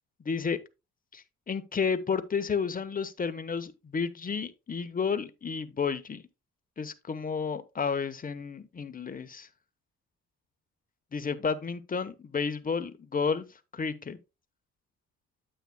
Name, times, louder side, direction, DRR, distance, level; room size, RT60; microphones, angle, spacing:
voice 1, 0.2-0.6 1.1-6.2 6.8-9.5 11.1-13.4 13.7-14.2, left 5 dB, 30° left, 1.0 m, -31 dB
9.0 x 8.3 x 2.2 m
cardioid pair, 90°, 30 cm